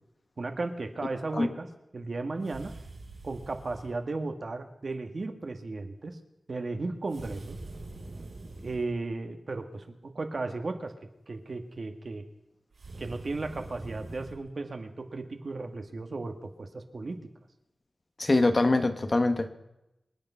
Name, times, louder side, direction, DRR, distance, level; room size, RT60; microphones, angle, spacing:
voice 1, 0.4-1.7 1.9-2.7 3.2-6.2 6.5-7.6 8.6-10.9 11.3-12.3 13.0-17.2, right 3 dB, 55° right, 6 dB, 1.7 m, -35 dB
sound 1, 2.4-3.9 7.1-8.9 12.7-14.4, right 2 dB, 85° right, 6.3 m, -44 dB
voice 2, 18.2-19.5, left 2 dB, 40° left, 8 dB, 1.3 m, -24 dB
26.5 x 8.9 x 5.6 m, 0.89 s
wide cardioid pair, 75°, 0 cm